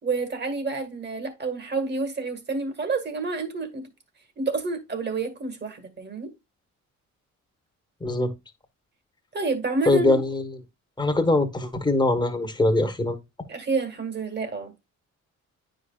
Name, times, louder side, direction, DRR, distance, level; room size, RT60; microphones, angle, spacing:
voice 1, 0.0-3.9 4.4-6.3 9.3-10.2 13.5-14.7, right 4 dB, 35° right, 1.7 m, -29 dB
voice 2, 8.0-8.3 9.9-10.5 11.0-13.2, left 2 dB, 15° left, 1.2 m, -22 dB
9.4 x 5.1 x 2.3 m
cardioid pair, 90°, 30 cm